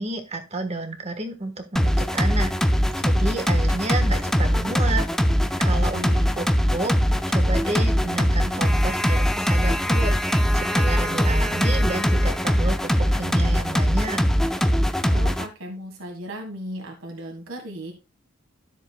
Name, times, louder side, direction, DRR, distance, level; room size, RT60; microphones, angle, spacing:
voice 1, 0.0-2.5 3.0-5.1 5.6-6.0 6.4-6.5 6.7-6.9 7.3-14.2, right 2 dB, 30° right, 7 dB, 1.3 m, -30 dB
sound 1, 1.8-15.5, equal, ahead, 0.5 m, -21 dB
voice 2, 5.7-6.3 15.1-17.9, equal, 75° right, 3 dB, 1.6 m, -36 dB
12.5 x 7.3 x 2.3 m, 0.28 s
head